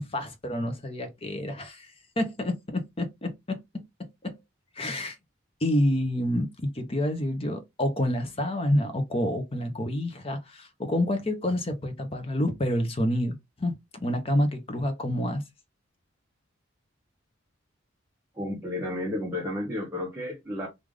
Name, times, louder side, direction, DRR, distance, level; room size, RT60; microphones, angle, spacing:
voice 1, 0.0-1.9 2.2-3.6 4.2-4.4 4.8-5.2 5.6-13.7 14.0-15.4, left 1 dB, 30° left, 0.7 m, -28 dB
voice 2, 18.4-20.7, left 1 dB, 15° right, 0.9 m, -32 dB
3.3 x 2.5 x 3.6 m
head